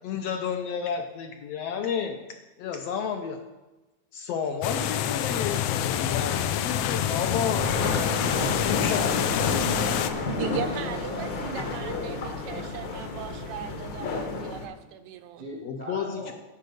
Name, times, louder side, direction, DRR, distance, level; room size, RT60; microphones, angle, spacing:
voice 1, 0.0-2.2 2.6-3.4 4.1-7.7 8.6-9.4 15.6-16.3, left 7 dB, 75° left, 5 dB, 1.5 m, -31 dB
sound 1, 4.6-10.1, left 10 dB, 90° left, 1.3 m, -27 dB
sound 2, 7.5-14.7, left 3 dB, 55° left, 1.4 m, -31 dB
voice 2, 8.8-12.2 15.4-16.3, left 1 dB, 35° left, 0 dB, 0.8 m, -38 dB
voice 3, 10.4-15.4, right 9 dB, 80° right, 9 dB, 1.9 m, -38 dB
10.5 x 4.3 x 7.8 m, 1.1 s
omnidirectional pair, 3.4 m